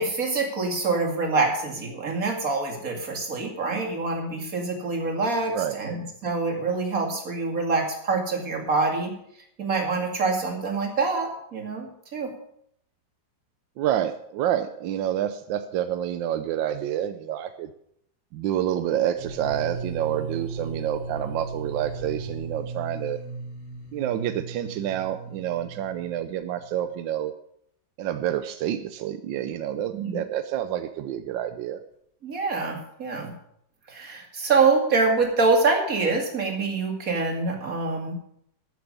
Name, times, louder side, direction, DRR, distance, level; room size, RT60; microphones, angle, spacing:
voice 1, 0.0-9.1 9.6-12.3 29.9-30.2 32.2-33.3 33.9-38.1, right 3 dB, 50° right, 2 dB, 2.6 m, -25 dB
voice 2, 13.8-17.7 18.3-23.2 23.9-27.3 28.0-31.8, right 11 dB, 85° right, 10 dB, 1.4 m, -28 dB
sound 1, 19.1-26.9, right 4 dB, 60° left, 4.1 m, -36 dB
13.0 x 9.3 x 5.3 m, 0.71 s
omnidirectional pair, 2.0 m